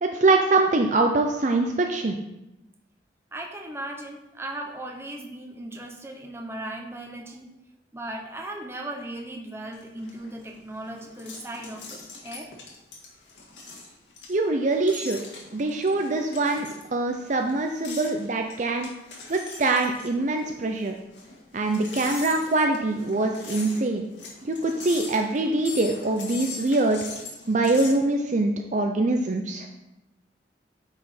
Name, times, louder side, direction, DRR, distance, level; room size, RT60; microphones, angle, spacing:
voice 1, 0.0-2.2 14.3-15.2 15.5-18.9 19.3-20.9 21.5-24.0 24.5-27.0 27.5-29.7, right 2 dB, 40° right, 4 dB, 0.5 m, -24 dB
voice 2, 3.3-7.5 7.9-12.5, right 1 dB, 15° right, 2 dB, 0.9 m, -37 dB
sound 1, 9.7-28.0, left 3 dB, 80° left, 1.9 m, -42 dB
9.1 x 4.9 x 4.3 m, 0.92 s
head